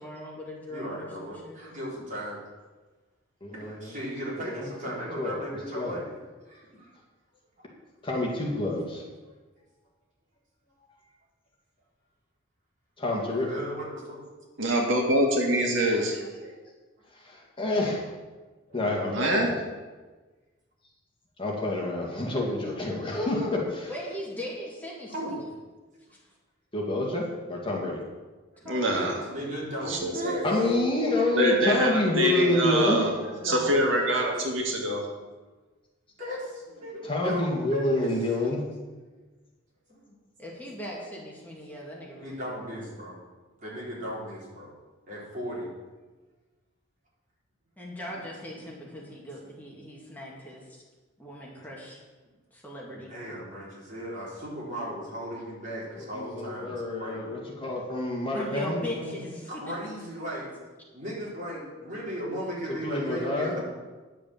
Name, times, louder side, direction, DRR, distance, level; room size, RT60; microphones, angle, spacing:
voice 1, 0.0-1.6 23.9-25.5 28.6-29.2 40.4-42.6 47.8-50.8 51.2-52.0 52.5-53.1 58.3-59.7, equal, 10° left, -3 dB, 2.1 m, -39 dB
voice 2, 0.7-2.4 3.5-6.2 6.5-6.9 7.6-7.7 9.2-9.3 13.3-14.2 18.7-19.0 25.1-25.4 29.0-30.5 32.4-34.1 34.6-35.1 36.2-38.2 39.9-40.1 41.7-41.8 42.2-43.2 43.6-44.7 45.1-45.7 48.0-48.2 53.1-57.4 58.9-60.5 60.9-63.6, equal, 40° right, -5 dB, 3.9 m, -37 dB
voice 3, 3.4-3.9 4.5-4.7 5.2-5.4 5.8-6.0 8.0-9.0 13.0-13.5 17.2-18.0 18.7-19.5 21.4-23.9 26.7-27.2 27.5-28.0 30.4-33.1 37.0-38.6 56.0-58.8 62.8-63.6, left 2 dB, 25° left, -1 dB, 2.0 m, -28 dB
voice 4, 14.6-16.5 19.1-19.5 28.7-29.1 29.9-30.6 31.4-33.1 33.4-35.0, right 1 dB, 80° right, 1 dB, 1.9 m, -25 dB
10.0 x 6.8 x 7.2 m, 1.3 s
head